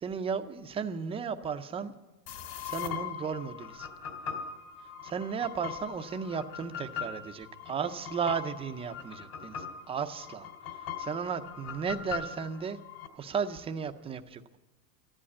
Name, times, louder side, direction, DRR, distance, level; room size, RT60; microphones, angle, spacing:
voice 1, 0.0-1.9 2.6-3.9 5.0-12.8 13.2-14.6, right 6 dB, 15° right, 7 dB, 0.5 m, -35 dB
sound 1, 2.3-13.1, left 7 dB, 55° left, 2.5 m, -41 dB
14.0 x 11.5 x 8.6 m, 1.1 s
supercardioid pair, 140°, 47 cm